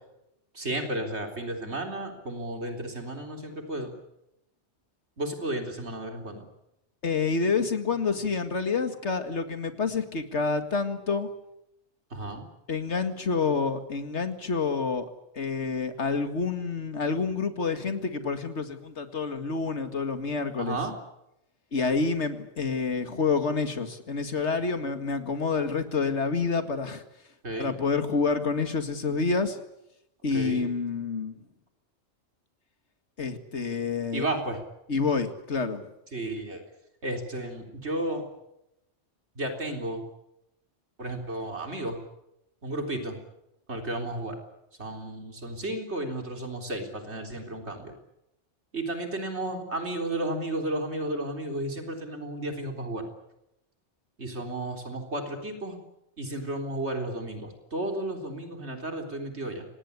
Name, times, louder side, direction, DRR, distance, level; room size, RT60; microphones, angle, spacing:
voice 1, 0.5-3.9 5.2-6.4 12.1-12.4 20.6-20.9 27.4-27.7 30.3-30.7 34.1-34.6 36.1-36.6 37.0-38.2 39.4-40.0 41.0-42.0 42.6-43.2 43.7-44.4 44.8-47.9 48.7-53.1 54.2-55.8 56.2-59.7, right 1 dB, 75° right, 4 dB, 4.0 m, -33 dB
voice 2, 7.0-11.3 12.7-15.1 15.3-20.8 21.7-27.0 27.6-29.6 30.2-31.3 33.2-34.3 34.9-35.8, left 4 dB, 80° left, 9 dB, 2.3 m, -28 dB
25.5 x 19.5 x 9.7 m, 0.85 s
omnidirectional pair, 1.2 m